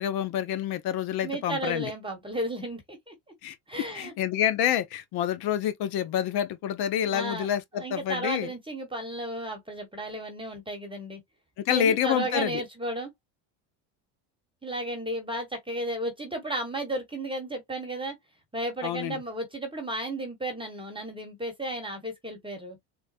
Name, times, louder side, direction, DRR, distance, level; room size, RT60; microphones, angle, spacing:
voice 1, 0.0-1.9 3.4-3.6 3.9-8.5 11.6-12.6 18.8-19.2, left 10 dB, 55° left, 0.7 m, -28 dB
voice 2, 1.2-3.1 3.7-4.1 7.1-7.5 7.7-11.2 11.7-13.1 14.6-18.2 18.5-22.8, right 1 dB, 10° right, 1.1 m, -33 dB
3.9 x 2.2 x 2.4 m
supercardioid pair, 90°, 46 cm